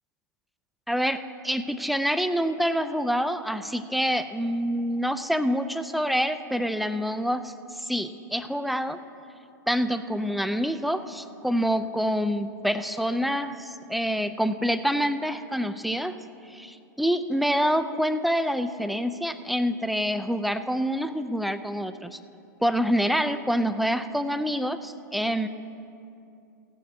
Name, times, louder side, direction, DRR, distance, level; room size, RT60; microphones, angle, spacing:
voice 1, 0.9-7.5 7.8-9.0 9.7-16.2 16.5-22.2 22.6-25.5, equal, ahead, 10 dB, 0.4 m, -26 dB
16.0 x 9.5 x 3.7 m, 2.6 s
figure-of-eight pair, 100°, 10 cm